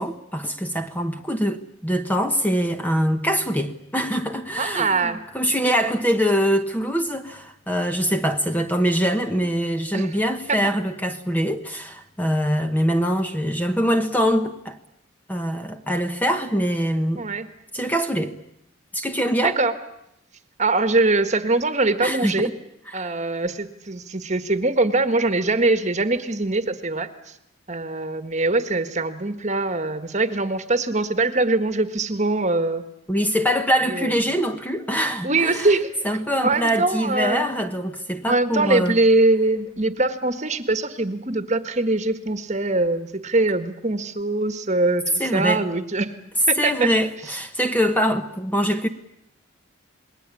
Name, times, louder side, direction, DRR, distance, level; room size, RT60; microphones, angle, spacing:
voice 1, 0.0-14.8 15.3-17.2 17.7-18.4 18.9-19.6 22.0-22.5 22.9-23.1 33.1-35.7 36.0-39.0 45.2-45.6 46.6-48.9, equal, 10° left, 1.1 m, -23 dB
voice 2, 4.6-5.2 9.9-10.1 10.5-10.7 17.2-17.5 19.4-19.7 20.6-22.5 22.9-27.1 27.7-32.8 33.9-34.2 35.2-35.9 36.4-37.5 38.3-46.1 46.5-46.9, right 2 dB, 35° right, 1.5 m, -22 dB
28.0 x 21.0 x 8.5 m
head